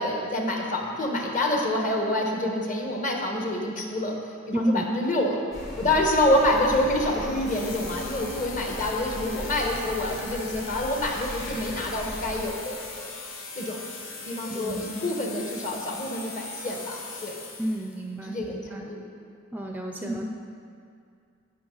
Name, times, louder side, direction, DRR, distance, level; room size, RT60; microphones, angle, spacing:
voice 1, 0.0-4.1 4.5-5.4 5.8-13.1 13.5-13.8 14.2-17.4 18.2-19.0 20.0-20.3, left 1 dB, 40° left, 0 dB, 1.3 m, -27 dB
voice 2, 4.5-4.9 5.8-5.9 14.5-14.9 17.6-18.9 19.5-20.3, right 1 dB, 10° right, 2 dB, 0.4 m, -31 dB
sound 1, 5.5-12.5, equal, 55° left, 2.8 m, -38 dB
sound 2, 7.4-18.0, left 3 dB, 85° left, 1.1 m, -40 dB
16.5 x 5.7 x 3.9 m, 2.3 s
head